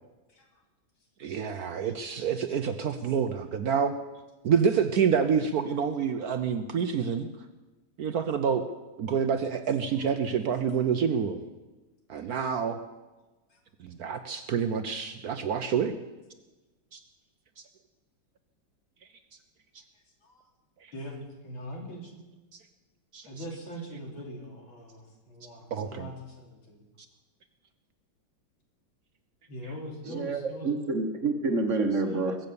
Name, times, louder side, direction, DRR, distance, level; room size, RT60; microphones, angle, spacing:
voice 1, 0.3-0.6 1.3-1.7 12.1-12.3 13.5-13.6 20.2-20.5 20.9-21.2 21.4-22.2 23.2-26.8 29.5-30.8, equal, 85° left, 0 dB, 3.7 m, -42 dB
voice 2, 1.2-3.9 4.4-7.3 8.0-8.6 9.0-11.4 12.1-12.8 13.8-15.9 16.9-17.0 23.1-23.3 25.7-26.1, right 7 dB, 65° right, 9 dB, 1.0 m, -27 dB
voice 3, 30.1-32.4, right 3 dB, 45° right, 5 dB, 1.3 m, -28 dB
21.0 x 7.8 x 6.9 m, 1.1 s
omnidirectional pair, 2.1 m